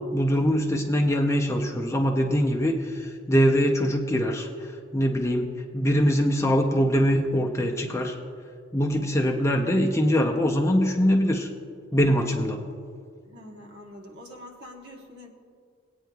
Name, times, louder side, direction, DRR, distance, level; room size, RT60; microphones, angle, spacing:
voice 1, 0.1-4.5 4.9-5.5 5.7-8.2 8.7-11.5 11.9-12.6, equal, 15° left, 1 dB, 0.5 m, -23 dB
voice 2, 13.3-15.3, left 1 dB, 55° right, 0 dB, 1.2 m, -44 dB
19.0 x 9.0 x 2.3 m, 2.2 s
head